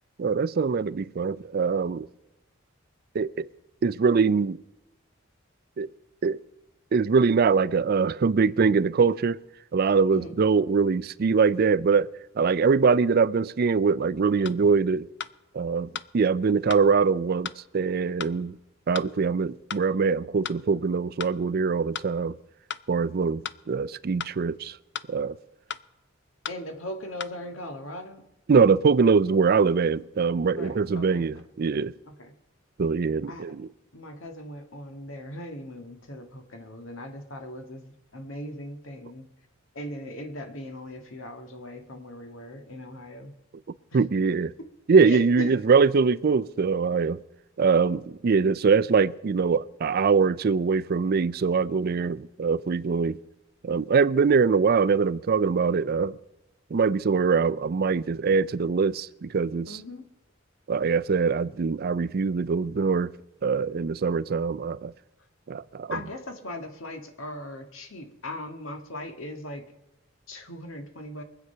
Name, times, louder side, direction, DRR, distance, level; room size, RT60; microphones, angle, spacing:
voice 1, 0.2-2.1 3.1-3.5 3.8-4.6 5.8-5.9 6.2-6.4 6.9-9.4 9.7-12.1 12.4-15.1 15.5-15.9 16.1-18.6 18.9-22.3 22.9-23.4 23.7-24.8 25.1-25.4 28.5-31.9 32.8-33.7 43.9-44.5 44.9-47.2 47.6-53.2 53.6-56.2 56.7-59.8 60.7-63.1 63.4-64.9 65.5-66.0, right 5 dB, 50° right, 0.4 m, -23 dB
sound 1, 14.4-14.6 15.2-15.3 15.9-16.1 16.7-16.8 17.4-17.6 18.2-18.3 18.9-19.1 19.7-19.8 20.4-20.6 21.2-21.3 21.9-22.1 22.7-22.8 23.4-23.6 24.2-24.4 24.9-25.1 25.7-25.8 26.4-26.6 27.2-27.3, left 8 dB, 60° left, 0.5 m, -35 dB
voice 2, 26.5-28.2 30.4-31.3 32.1-32.3 33.3-33.5 33.9-39.2 39.7-43.3 45.1-45.6 59.7-60.1 65.9-69.7 70.3-71.2, left 1 dB, 80° left, 1.9 m, -39 dB
23.0 x 7.9 x 5.7 m
head